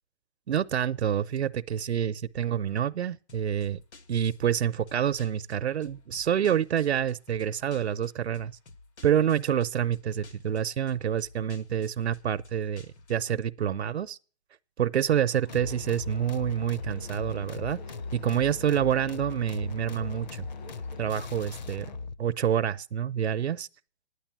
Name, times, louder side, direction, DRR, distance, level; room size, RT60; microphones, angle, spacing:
voice 1, 0.5-3.8 4.1-8.5 9.0-14.2 14.8-17.8 18.1-20.5 21.0-21.9 22.2-23.7, right 9 dB, 75° right, 0.7 m, -27 dB
sound 1, 3.3-13.4, left 3 dB, 90° left, 1.8 m, -53 dB
Bird, 15.1-21.6, equal, 70° left, 1.6 m, -52 dB
sound 2, 15.5-22.2, left 4 dB, 40° left, 0.6 m, -39 dB
9.9 x 8.8 x 7.5 m
hypercardioid pair, 165°, 33 cm